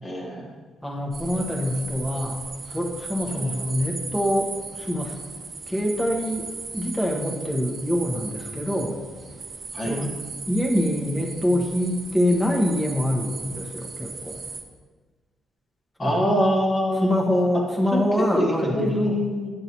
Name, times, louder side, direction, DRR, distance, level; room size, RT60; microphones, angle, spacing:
voice 1, 0.0-0.4 3.3-3.6 9.7-10.0 16.0-17.2 17.9-18.0 18.3-19.5, equal, 35° left, -2 dB, 1.5 m, -24 dB
voice 2, 0.8-2.4 2.7-5.1 5.7-9.0 9.8-10.1 10.5-14.4 16.0-16.3 17.0-19.2, left 1 dB, 10° left, -1 dB, 1.2 m, -25 dB
sound 1, 1.1-14.6, right 4 dB, 45° right, 0.9 m, -37 dB
9.6 x 6.7 x 3.0 m, 1.4 s
cardioid pair, 90°, 0 cm